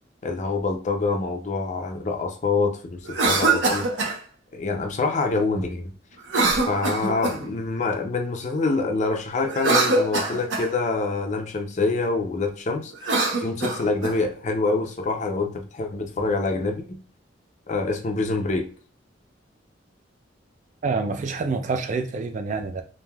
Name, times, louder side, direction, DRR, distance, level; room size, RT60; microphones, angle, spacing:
voice 1, 0.2-3.9 4.5-5.9 6.7-13.2 13.4-17.0 17.7-18.7, left 3 dB, 40° left, 0.5 m, -26 dB
Cough, 3.0-4.2 6.3-7.5 9.4-10.7 12.9-14.2, right 3 dB, 90° right, 0.8 m, -23 dB
voice 2, 20.8-22.8, right 4 dB, 40° right, 0.3 m, -27 dB
3.3 x 2.5 x 2.3 m
head